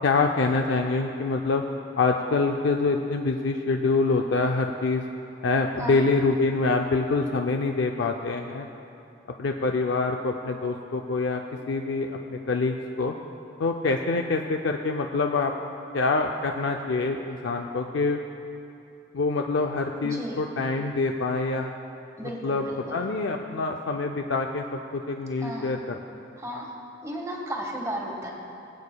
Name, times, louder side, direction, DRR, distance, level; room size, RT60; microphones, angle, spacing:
voice 1, 0.0-1.6 2.0-5.0 5.4-8.7 9.4-11.4 11.7-13.1 13.6-15.5 15.9-18.2 19.1-21.8 22.4-26.0, left 3 dB, 70° left, 3 dB, 0.5 m, -25 dB
voice 2, 20.0-20.4 22.2-23.0 25.4-25.7 26.4-26.7 27.0-28.3, right 1 dB, 15° right, -1 dB, 1.4 m, -34 dB
22.0 x 8.6 x 2.3 m, 2.7 s
head